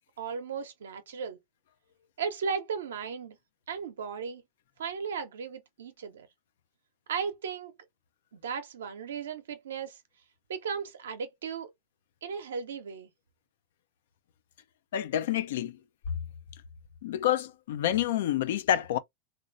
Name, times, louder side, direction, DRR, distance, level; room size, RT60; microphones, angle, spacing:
voice 1, 0.2-1.4 2.2-3.4 3.7-4.4 4.8-6.3 7.1-7.7 8.3-10.0 10.5-11.7 12.2-13.1, right 6 dB, 80° right, 0.7 m, -36 dB
voice 2, 14.9-15.8 17.0-19.0, left 11 dB, 70° left, 0.4 m, -28 dB
3.2 x 2.5 x 2.5 m
hypercardioid pair, 105°, 0 cm